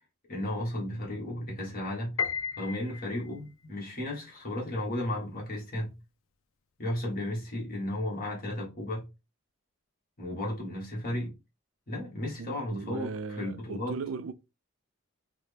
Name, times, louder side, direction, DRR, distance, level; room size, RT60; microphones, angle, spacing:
voice 1, 0.3-2.2 2.6-5.9 6.8-9.1 10.2-11.3 11.9-13.9, left 1 dB, 40° left, 1.2 m, -34 dB
Piano, 2.2-3.5, left 7 dB, 65° left, 0.4 m, -33 dB
voice 2, 12.4-14.3, right 4 dB, 60° right, 0.3 m, -37 dB
4.0 x 2.0 x 3.3 m
head